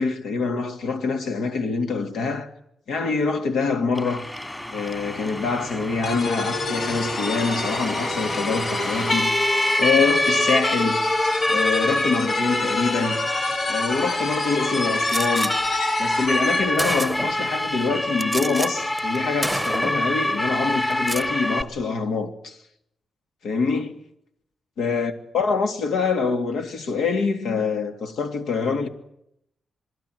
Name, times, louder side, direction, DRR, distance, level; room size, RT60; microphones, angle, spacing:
voice 1, 0.0-2.5 2.9-4.2 4.7-9.4 9.8-11.0 11.5-13.2 13.7-15.5 16.0-22.6 23.4-23.9 24.8-28.9, left 4 dB, 85° left, 2.8 m, -25 dB
Siren, 3.9-21.6, left 1 dB, 15° left, 2.3 m, -26 dB
sound 1, 6.0-16.8, left 3 dB, 60° left, 2.0 m, -29 dB
Gunshot gunfire, 15.1-15.5 16.3-16.4 16.8-17.5 18.2-18.7 19.0-19.2 19.4-20.1 20.9-21.3, right 1 dB, 5° right, 1.0 m, -28 dB
27.5 x 20.0 x 8.0 m
cardioid pair, 85°, 0 cm